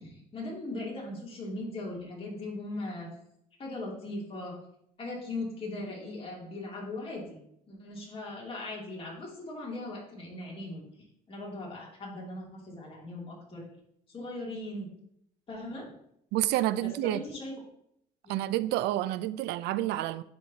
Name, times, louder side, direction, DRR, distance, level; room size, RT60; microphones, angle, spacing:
voice 1, 0.0-3.1 3.6-4.6 5.0-7.4 7.7-10.9 11.3-13.7 14.1-14.9 15.5-15.9 16.8-17.5 18.2-18.4, left 2 dB, 35° left, 2.7 m, -39 dB
voice 2, 16.3-17.2 18.3-20.2, right 15 dB, 85° right, 0.4 m, -29 dB
10.5 x 4.4 x 2.8 m
cardioid pair, 110°, 17 cm